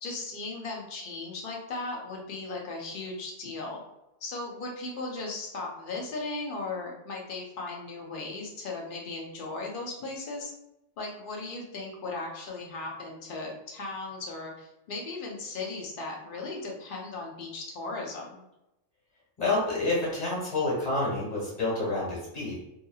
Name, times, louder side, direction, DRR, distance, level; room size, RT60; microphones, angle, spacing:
voice 1, 0.0-3.8 4.2-10.5 11.0-18.4, left 3 dB, 50° left, -1 dB, 0.7 m, -37 dB
voice 2, 19.4-22.6, left 2 dB, 30° left, -6 dB, 1.3 m, -28 dB
2.7 x 2.6 x 2.3 m, 0.89 s
omnidirectional pair, 1.4 m